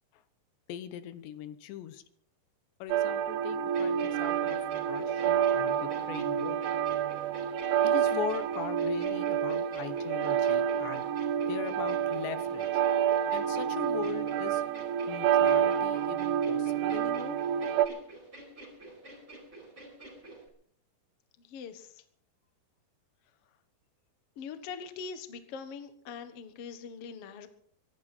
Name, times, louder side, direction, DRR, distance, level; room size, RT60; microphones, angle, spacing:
voice 1, 0.7-2.0 2.8-6.6 7.8-11.1 11.5-12.8 13.3-14.6 15.1-17.4, left 10 dB, 90° left, 12 dB, 3.3 m, -40 dB
sound 1, 2.9-17.9, right 9 dB, 80° right, 2.8 m, -28 dB
sound 2, 3.7-20.5, right 2 dB, 15° right, 4.7 m, -48 dB
voice 2, 21.5-22.0 24.4-27.5, left 6 dB, 65° left, 9 dB, 1.4 m, -42 dB
24.5 x 11.5 x 4.4 m, 0.62 s
omnidirectional pair, 4.9 m